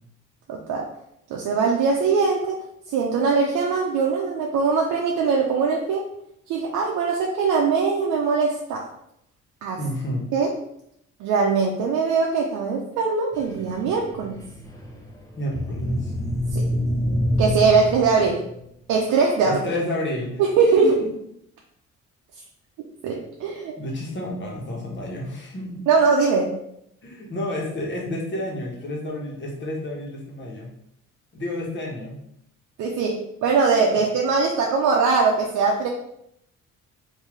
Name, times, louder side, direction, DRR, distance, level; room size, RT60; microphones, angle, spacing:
voice 1, 0.5-0.9 1.3-6.1 6.5-8.9 9.6-9.8 10.3-10.5 11.2-14.4 16.5-16.7 17.4-18.5 18.9-19.6 20.4-21.0 23.0-23.8 25.9-26.5 32.8-35.9, right 5 dB, 80° right, -1 dB, 0.6 m, -21 dB
voice 2, 9.8-10.2 15.3-16.1 19.4-20.4 20.7-21.1 23.8-25.8 27.0-30.7 31.3-32.2 33.9-34.0, left 1 dB, 40° left, -2 dB, 1.2 m, -30 dB
sound 1, 13.3-18.6, equal, 10° left, 0.7 m, -27 dB
3.6 x 2.7 x 3.2 m, 0.76 s
cardioid pair, 90°, 30 cm